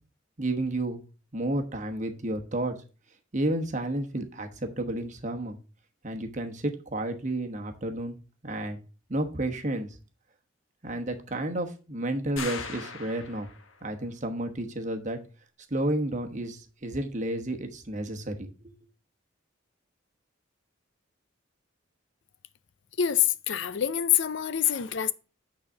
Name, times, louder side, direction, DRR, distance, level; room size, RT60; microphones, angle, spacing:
voice 1, 0.4-1.0 1.3-2.8 3.3-5.6 6.0-8.2 8.4-8.8 9.1-10.0 10.8-13.5 13.8-15.2 15.7-18.7, right 1 dB, 35° right, 1.1 m, -31 dB
sound 1, 12.4-13.8, left 5 dB, 90° left, 1.3 m, -39 dB
voice 2, 23.0-25.1, left 10 dB, 65° left, 0.5 m, -25 dB
8.8 x 4.1 x 6.0 m
head